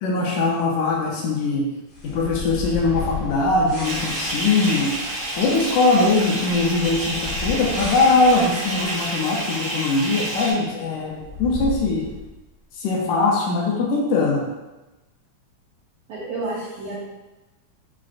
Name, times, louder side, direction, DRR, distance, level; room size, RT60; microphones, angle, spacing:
voice 1, 0.0-1.7 2.0-4.9 5.4-12.1 12.8-14.5, left 3 dB, 80° left, -2 dB, 1.9 m, -21 dB
sound 1, 1.9-10.1 10.3-10.4 11.1-12.4, left 4 dB, 55° left, 1.3 m, -35 dB
Bathtub (filling or washing) / Fill (with liquid), 3.8-10.5, right 1 dB, 55° right, 0.8 m, -29 dB
voice 2, 16.1-17.0, right 2 dB, 75° right, -8 dB, 1.5 m, -30 dB
5.9 x 2.4 x 2.5 m, 1.1 s
omnidirectional pair, 3.6 m